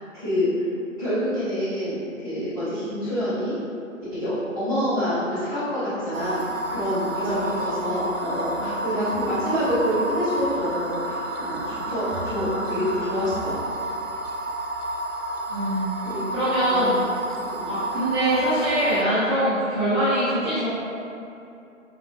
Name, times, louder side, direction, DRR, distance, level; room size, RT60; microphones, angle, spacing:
voice 1, 0.1-0.5 1.0-3.5 4.1-13.6 16.0-16.2 16.7-16.9 17.4-17.7, equal, 15° left, -18 dB, 0.8 m, -27 dB
sound 1, 6.1-19.0, right 1 dB, 70° right, 0.7 m, -30 dB
voice 2, 8.6-9.0 15.5-15.9 16.3-17.0 17.7-20.7, right 1 dB, 20° right, -13 dB, 1.1 m, -23 dB
5.0 x 2.8 x 2.6 m, 2.6 s
figure-of-eight pair, 150°, 41 cm